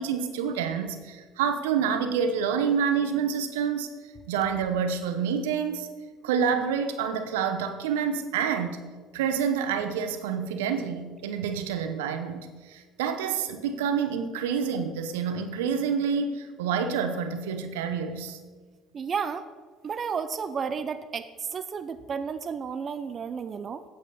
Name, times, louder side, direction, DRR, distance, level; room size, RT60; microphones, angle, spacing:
voice 1, 0.0-3.9 4.3-5.9 6.2-8.8 9.1-18.4, right 7 dB, 85° right, 8 dB, 0.8 m, -28 dB
voice 2, 18.9-19.5 19.8-23.8, right 6 dB, 40° right, 11 dB, 0.6 m, -32 dB
8.8 x 8.2 x 5.5 m, 1.5 s
hypercardioid pair, 70°, 0 cm